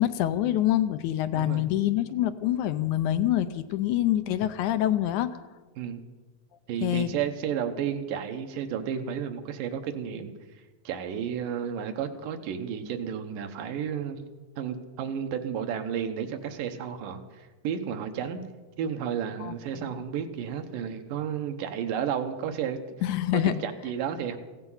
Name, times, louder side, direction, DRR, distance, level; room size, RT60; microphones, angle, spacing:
voice 1, 0.0-5.3 6.8-7.1 19.4-19.6 23.0-23.6, left 12 dB, 75° left, 11 dB, 2.0 m, -25 dB
voice 2, 1.3-1.7 5.8-6.0 6.7-10.3 10.8-14.2 14.6-18.4 18.8-22.8 23.3-24.4, right 8 dB, 90° right, 7 dB, 2.8 m, -32 dB
16.0 x 14.5 x 5.6 m, 1.3 s
omnidirectional pair, 3.7 m